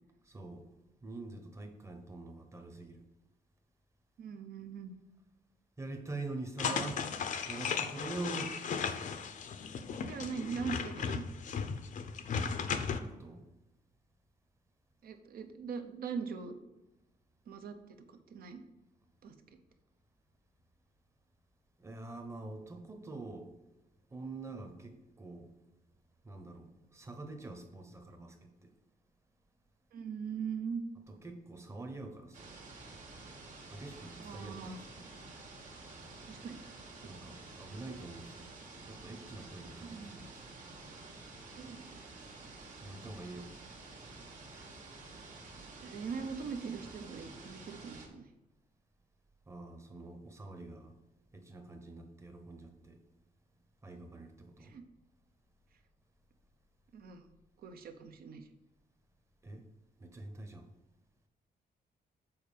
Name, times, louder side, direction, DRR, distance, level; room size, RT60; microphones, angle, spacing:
voice 1, 0.2-0.7 1.0-3.0 5.8-8.6 12.9-13.5 21.8-23.5 24.1-25.5 26.2-28.7 31.1-32.6 33.7-35.1 37.0-38.5 38.8-40.5 42.8-43.6 49.5-50.9 51.3-53.0 53.8-54.7 59.4-59.7 60.0-60.7, right 2 dB, 15° right, 5 dB, 0.9 m, -45 dB
voice 2, 4.2-4.9 10.0-11.2 15.0-16.5 17.5-18.6 19.2-19.3 29.9-30.8 34.2-34.8 36.3-36.6 37.0-37.1 39.8-40.2 41.6-42.0 45.8-48.3 54.6-54.8 56.9-57.3 57.6-58.5, right 6 dB, 70° right, 7 dB, 0.8 m, -41 dB
sound 1, 6.6-13.0, left 6 dB, 55° left, 0.6 m, -36 dB
sound 2, 32.3-48.1, right 3 dB, 55° right, 1.6 m, -50 dB
7.2 x 4.5 x 5.1 m, 1.0 s
wide cardioid pair, 160°, 16 cm